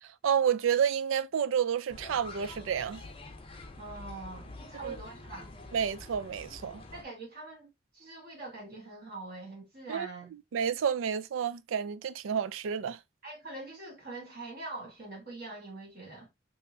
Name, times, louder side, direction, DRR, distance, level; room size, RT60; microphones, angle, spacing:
voice 1, 0.0-3.0 4.8-5.0 5.7-6.8 9.9-10.1 10.5-13.0, right 8 dB, 75° right, 0.4 m, -30 dB
sound 1, 1.9-7.0, left 2 dB, 25° left, 0.6 m, -47 dB
voice 2, 3.8-5.5 6.9-10.3 13.2-16.3, right 2 dB, 45° right, 1.4 m, -44 dB
3.4 x 3.0 x 2.5 m
head